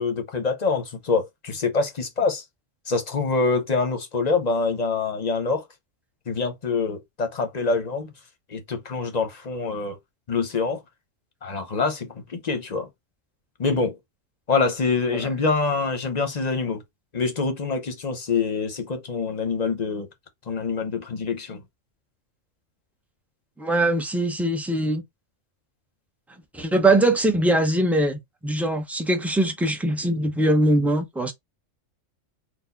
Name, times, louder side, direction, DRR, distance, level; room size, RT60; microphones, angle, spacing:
voice 1, 0.0-2.4 2.9-5.6 6.3-8.1 8.5-10.0 10.3-10.8 11.4-12.9 13.6-14.0 14.5-16.8 17.1-20.1 20.5-21.6, left 4 dB, 35° left, 0.9 m, -25 dB
voice 2, 23.6-25.0 26.5-31.3, right 1 dB, ahead, 0.7 m, -22 dB
4.4 x 2.4 x 4.0 m
omnidirectional pair, 1.3 m